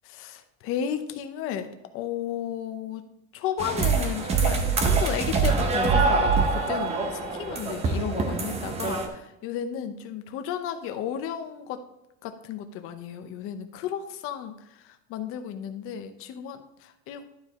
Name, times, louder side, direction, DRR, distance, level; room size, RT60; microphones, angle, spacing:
voice 1, 0.0-3.1 3.3-11.8 12.2-17.2, left 9 dB, 40° left, 7 dB, 0.8 m, -34 dB
sound 1, 3.6-9.1, right 4 dB, 20° right, 0.6 m, -24 dB
11.5 x 4.7 x 3.7 m, 0.91 s
cardioid pair, 175°, 35 cm